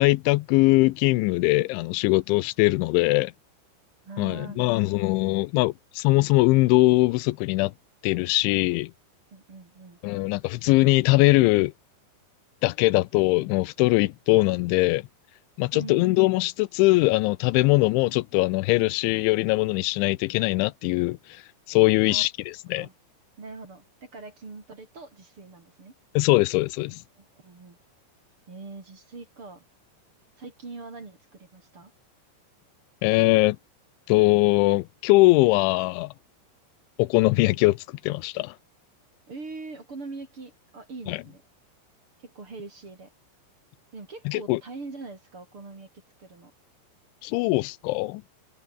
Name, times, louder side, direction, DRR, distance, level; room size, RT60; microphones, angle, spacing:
voice 1, 0.0-3.3 4.2-7.7 8.0-8.9 10.0-11.7 12.6-15.0 15.6-21.4 21.7-22.3 22.7-22.9 26.2-27.0 33.0-33.6 34.1-36.1 37.0-38.5 41.1-41.2 44.3-44.6 47.2-48.2, left 21 dB, 85° left, 3.1 m, -21 dB
voice 2, 4.0-5.1 9.3-10.0 15.7-16.1 22.1-22.2 22.8-22.9 23.4-25.9 26.9-27.8 28.5-29.6 30.4-31.9 39.3-41.4 42.2-43.1 43.9-45.9 46.2-46.5, right 3 dB, 30° right, 4.7 m, -42 dB
omnidirectional pair, 5.3 m